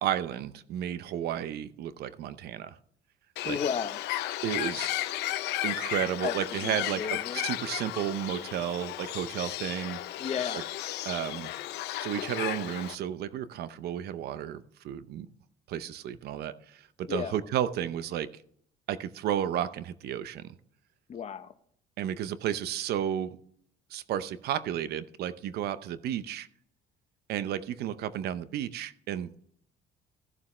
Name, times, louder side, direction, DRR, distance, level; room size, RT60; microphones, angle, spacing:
voice 1, 0.0-2.8 3.4-3.6 4.4-4.9 5.6-10.0 10.5-10.6 11.1-11.5 12.0-15.3 15.7-18.3 18.9-20.5 22.0-23.4 23.9-26.5 27.3-29.4, right 10 dB, 70° right, 14 dB, 0.7 m, -32 dB
Bird, 3.4-13.0, left 15 dB, 85° left, 0.7 m, -34 dB
voice 2, 3.4-4.0 6.2-6.3 6.6-7.4 10.2-10.6 17.1-17.3 21.1-21.5, left 7 dB, 40° left, 11 dB, 0.9 m, -33 dB
15.5 x 7.3 x 3.2 m, 0.65 s
cardioid pair, 110°, 17 cm